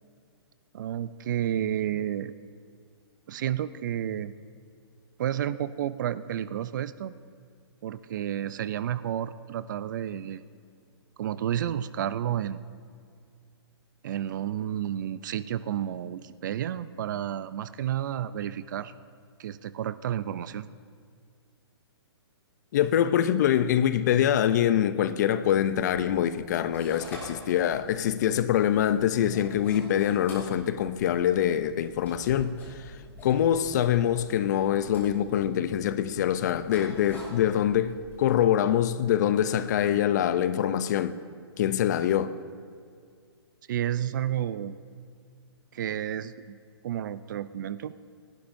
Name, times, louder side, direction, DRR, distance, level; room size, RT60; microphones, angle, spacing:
voice 1, 0.7-2.3 3.3-4.3 5.2-7.1 7.8-10.4 11.2-12.6 14.0-18.9 19.4-20.7 43.7-44.8 45.7-46.6 46.8-47.9, right 10 dB, 45° right, 0.5 m, -31 dB
voice 2, 22.7-32.6 33.2-41.2 41.6-42.4, left 10 dB, 40° left, 0.5 m, -24 dB
sound 1, 25.7-38.4, equal, 15° left, 3.2 m, -47 dB
27.5 x 11.5 x 2.6 m
hypercardioid pair, 155°, 14 cm